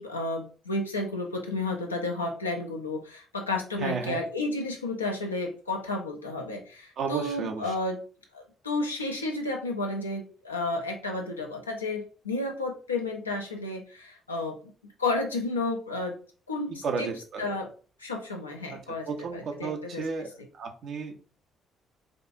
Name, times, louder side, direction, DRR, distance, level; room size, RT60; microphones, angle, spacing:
voice 1, 0.0-8.0 8.3-14.6 15.0-16.2 16.5-17.1 17.4-17.7 18.0-20.1, left 2 dB, 85° left, 1 dB, 0.5 m, -32 dB
voice 2, 3.8-4.2 7.0-7.7 16.8-17.5 18.7-18.8 19.1-20.3 20.5-21.3, right 5 dB, 55° right, 4 dB, 0.7 m, -33 dB
5.0 x 2.4 x 2.5 m, 0.38 s
figure-of-eight pair, 45°, 0 cm